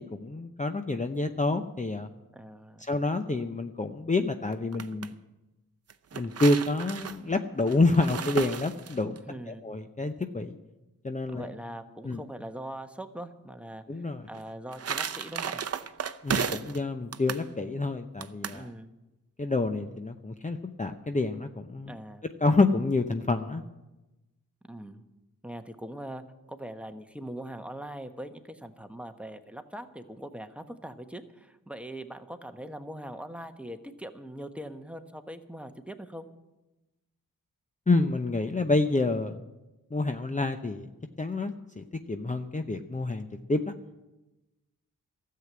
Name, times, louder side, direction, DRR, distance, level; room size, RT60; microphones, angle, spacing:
voice 1, 0.0-2.1 2.8-5.1 6.1-9.2 9.5-10.6 11.0-11.5 12.0-12.2 13.9-14.3 16.2-18.6 19.4-22.0 22.4-23.6 37.9-39.4 39.9-40.9 41.2-43.7, left 2 dB, 20° left, 7 dB, 0.8 m, -28 dB
voice 2, 2.3-2.9 9.2-9.6 11.3-15.6 18.5-18.9 21.8-22.3 24.7-25.0 25.4-26.2 26.5-36.3, right 1 dB, 5° right, 7 dB, 1.2 m, -41 dB
sound 1, 4.5-5.1 5.9-9.2 14.3-16.8 17.1-17.5 18.2-18.6, right 7 dB, 45° right, 0.8 m, -34 dB
13.0 x 7.7 x 9.6 m, 1.0 s
cardioid pair, 55°, 35 cm